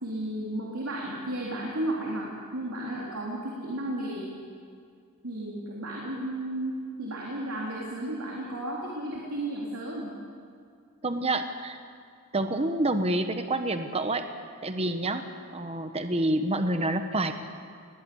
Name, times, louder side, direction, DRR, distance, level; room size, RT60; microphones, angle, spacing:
voice 1, 0.0-2.3 2.5-4.3 5.2-10.1, right 1 dB, 70° right, -4 dB, 3.6 m, -33 dB
voice 2, 11.0-11.8 12.3-14.2 14.6-15.2 15.5-17.3, right 1 dB, 25° right, 8 dB, 1.2 m, -27 dB
20.5 x 20.5 x 7.1 m, 2.3 s
head